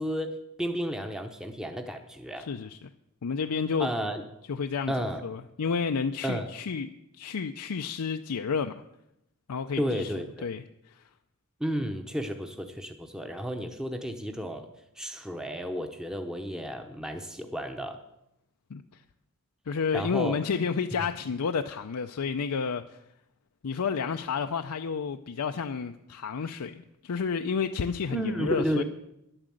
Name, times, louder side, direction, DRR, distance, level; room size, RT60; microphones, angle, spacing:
voice 1, 0.0-2.5 3.8-4.2 4.9-5.2 6.2-6.5 9.8-10.5 11.6-14.7 15.0-18.0 19.9-20.4 28.1-28.8, equal, 5° right, 5 dB, 0.8 m, -32 dB
voice 2, 2.4-2.9 3.2-3.9 4.5-4.9 5.2-6.9 7.2-8.7 9.5-10.1 10.4-11.0 18.7-18.8 19.7-23.0 23.6-28.8, left 5 dB, 90° left, 6 dB, 0.5 m, -30 dB
11.0 x 8.9 x 7.7 m, 0.84 s
head